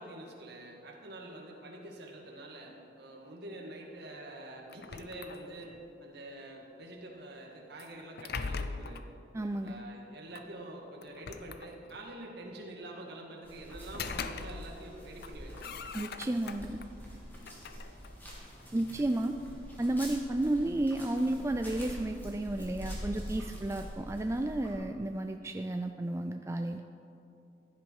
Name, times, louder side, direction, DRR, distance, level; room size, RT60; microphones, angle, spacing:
voice 1, 0.0-5.7 6.0-9.0 9.6-15.9 17.4-17.5 19.0-19.1, right 1 dB, 55° right, 0 dB, 2.1 m, -46 dB
sound 1, 4.7-5.8 7.8-9.1 10.3-10.5 11.0-12.1 13.7-14.9 15.2-16.9 17.3-19.0, left 5 dB, 55° left, 0.6 m, -41 dB
voice 2, 9.3-9.8 15.9-16.8 18.7-19.4 19.8-26.8, right 1 dB, 15° right, 6 dB, 0.3 m, -32 dB
sound 2, 13.4-24.7, equal, 10° left, 2.5 m, -45 dB
15.5 x 11.0 x 4.8 m, 2.7 s
head